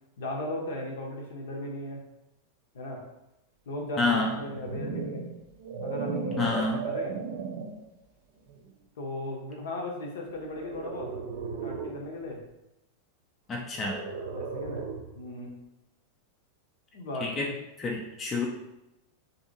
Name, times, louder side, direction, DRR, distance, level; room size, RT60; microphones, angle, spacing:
voice 1, 0.2-2.0 2.7-3.0 3.7-5.2 5.8-7.2 9.0-11.2 11.6-12.4 14.3-14.9 15.1-15.6 16.9-17.5, left 1 dB, 60° left, 0 dB, 0.6 m, -36 dB
voice 2, 4.0-4.3 6.4-6.8 13.5-14.0 17.2-17.5 17.8-18.5, left 3 dB, 25° left, -1 dB, 0.4 m, -28 dB
sound 1, 4.2-7.8 8.5-8.7 10.5-12.0 13.7-15.2, right 5 dB, 50° right, 0.5 m, -36 dB
2.7 x 2.6 x 2.6 m, 0.90 s
figure-of-eight pair, 90°, 0 cm